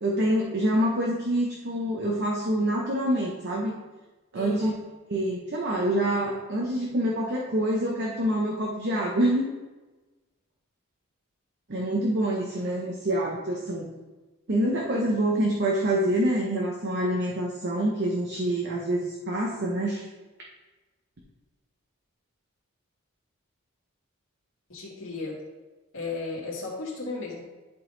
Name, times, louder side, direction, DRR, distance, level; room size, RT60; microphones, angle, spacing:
voice 1, 0.0-3.7 4.3-4.7 5.1-9.5 11.7-13.9 14.5-20.0, right 1 dB, 50° right, -2 dB, 0.9 m, -26 dB
voice 2, 4.3-4.7 24.7-25.4 25.9-27.4, left 3 dB, 65° left, -3 dB, 2.0 m, -34 dB
10.5 x 4.1 x 3.9 m, 1.2 s
head